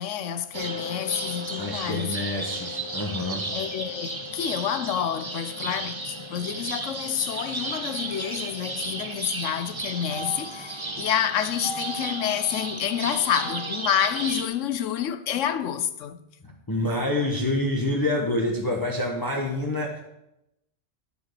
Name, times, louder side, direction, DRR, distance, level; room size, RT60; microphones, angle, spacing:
voice 1, 0.0-2.2 3.5-16.2, left 9 dB, 90° left, 1.1 m, -28 dB
sound 1, 0.5-14.5, right 2 dB, 25° right, 1.0 m, -33 dB
voice 2, 1.6-3.5 5.7-5.8 16.4-20.0, left 1 dB, 20° left, 1.2 m, -27 dB
10.5 x 7.0 x 6.8 m
omnidirectional pair, 1.2 m